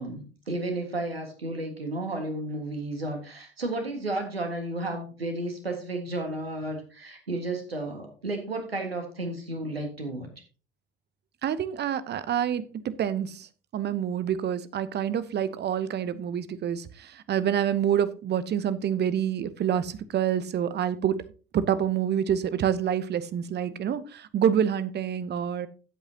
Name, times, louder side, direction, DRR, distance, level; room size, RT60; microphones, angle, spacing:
voice 1, 0.0-10.3, right 2 dB, 85° right, 5 dB, 1.9 m, -33 dB
voice 2, 11.4-13.5 13.7-21.2 21.5-25.7, right 9 dB, 35° right, 15 dB, 0.9 m, -27 dB
14.5 x 8.1 x 2.9 m, 0.36 s
figure-of-eight pair, 60°, 29 cm